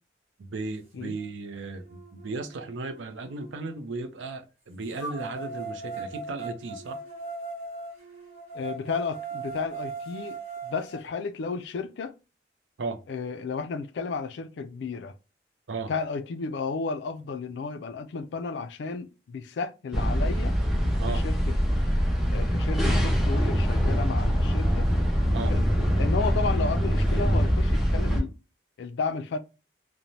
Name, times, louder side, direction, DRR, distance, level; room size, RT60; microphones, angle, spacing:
voice 1, 0.4-7.0 12.8-13.0 15.7-15.9 21.0-21.2 25.3-25.5, right 3 dB, 90° right, 0.5 m, -35 dB
sound 1, 1.2-1.3 1.8-3.7 5.0-11.0, right 4 dB, 35° right, 1.0 m, -39 dB
voice 2, 8.5-12.1 13.1-15.1 15.9-20.5 21.1-21.5 22.3-24.9 25.5-25.6 26.0-28.3 28.8-29.4, left 4 dB, 75° left, 0.4 m, -33 dB
sound 2, 19.9-28.2, equal, ahead, 0.5 m, -24 dB
2.6 x 2.1 x 3.0 m
head